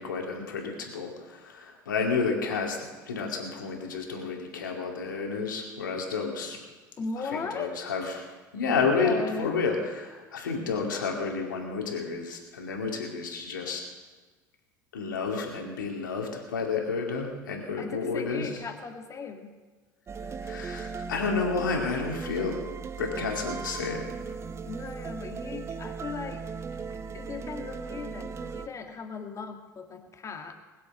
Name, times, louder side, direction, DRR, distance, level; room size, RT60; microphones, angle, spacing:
voice 1, 0.0-2.8 3.1-6.6 7.3-8.3 8.5-13.8 14.9-18.5 20.4-22.6 23.0-24.3, left 4 dB, 75° left, 1 dB, 2.4 m, -30 dB
voice 2, 7.0-7.8 8.7-9.6 17.8-19.6 24.7-26.5 26.9-30.6, left 5 dB, 30° left, 4 dB, 1.8 m, -37 dB
sound 1, 20.1-28.7, right 5 dB, 25° right, 0.7 m, -37 dB
20.5 x 7.5 x 6.7 m, 1.3 s
figure-of-eight pair, 70°, 11 cm